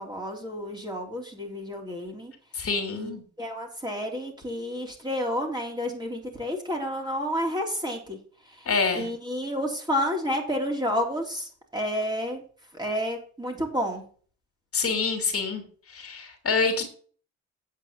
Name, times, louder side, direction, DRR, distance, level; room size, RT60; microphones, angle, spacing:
voice 1, 0.0-2.3 2.9-3.1 3.4-8.2 8.4-12.4 12.7-14.0, equal, 15° right, 1 dB, 3.4 m, -30 dB
voice 2, 2.5-3.2 8.6-9.1 14.7-15.6 15.9-16.9, left 4 dB, 45° left, 5 dB, 3.1 m, -26 dB
8.6 x 5.4 x 7.0 m, 0.43 s
supercardioid pair, 80°, 33 cm